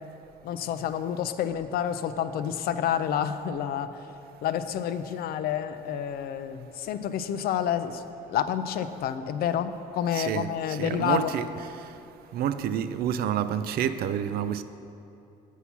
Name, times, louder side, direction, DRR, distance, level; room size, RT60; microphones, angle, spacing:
voice 1, 0.4-4.1 4.4-8.0 8.3-11.3, left 9 dB, 65° left, 0.5 m, -29 dB
voice 2, 10.1-11.5 12.3-14.6, right 9 dB, 65° right, 0.4 m, -28 dB
8.3 x 5.6 x 5.9 m
cardioid pair, 110°, 17 cm